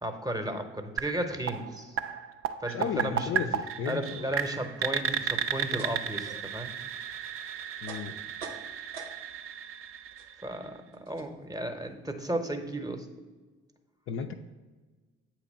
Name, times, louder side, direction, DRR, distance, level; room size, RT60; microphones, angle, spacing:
voice 1, 0.0-2.0 2.6-3.3 3.9-6.7 8.1-8.2 10.4-13.1, right 1 dB, 10° right, 6 dB, 0.8 m, -34 dB
sound 1, 1.0-10.8, right 8 dB, 40° right, 0.5 m, -34 dB
voice 2, 2.7-4.3 7.8-8.1 14.1-14.3, left 7 dB, 40° left, 6 dB, 0.5 m, -34 dB
sound 2, 5.7-9.5 9.8-12.7, right 4 dB, 80° right, 0.8 m, -48 dB
8.0 x 2.9 x 5.3 m, 1.3 s
hypercardioid pair, 50°, 34 cm